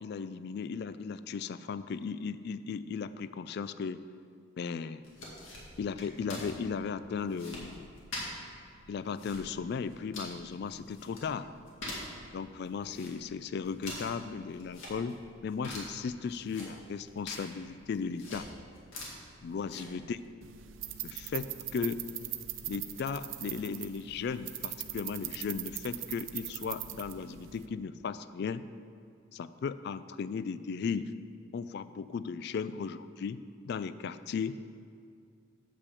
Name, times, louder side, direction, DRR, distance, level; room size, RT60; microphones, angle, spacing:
voice 1, 0.0-4.0 4.6-5.0 5.8-7.9 8.9-11.5 12.3-18.5 19.4-20.2 21.0-22.1 22.6-28.6 29.3-31.1 31.5-34.6, left 5 dB, 55° left, 14 dB, 0.3 m, -36 dB
sound 1, 5.0-20.3, left 1 dB, 75° left, 2.1 m, -46 dB
sound 2, 20.4-27.7, right 12 dB, 70° right, 0.5 m, -41 dB
8.1 x 5.8 x 6.9 m, 2.4 s
head